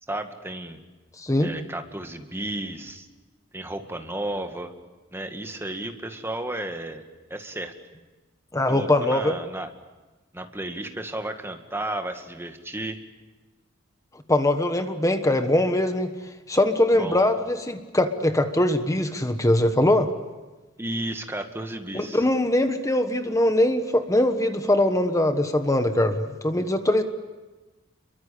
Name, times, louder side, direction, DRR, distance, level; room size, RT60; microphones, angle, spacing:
voice 1, 0.1-0.8 1.4-3.1 3.5-4.7 5.1-7.0 7.3-7.7 8.7-9.7 10.3-13.0 16.9-17.3 20.8-22.2, right 1 dB, 10° right, 5 dB, 2.0 m, -33 dB
voice 2, 1.2-1.5 8.5-9.3 14.3-16.1 16.5-20.1 21.9-27.0, left 1 dB, 15° left, 8 dB, 1.3 m, -22 dB
28.5 x 23.5 x 8.6 m, 1.2 s
head